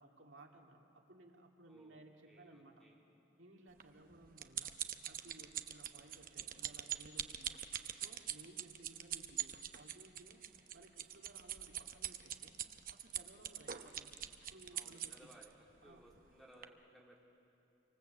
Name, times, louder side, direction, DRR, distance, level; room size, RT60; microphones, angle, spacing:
voice 1, 0.0-2.8 3.4-4.8 5.1-7.5 7.9-10.4 10.7-12.6 12.9-14.1 14.5-15.3 15.8-16.0, right 2 dB, 85° right, 1 dB, 2.5 m, -60 dB
voice 2, 1.7-3.0 14.7-17.2, right 1 dB, ahead, -3 dB, 3.3 m, -62 dB
sound 1, 3.8-15.5 16.1-16.3 16.6-16.7, right 10 dB, 45° right, 0.8 m, -43 dB
27.0 x 25.0 x 8.0 m, 2.8 s
head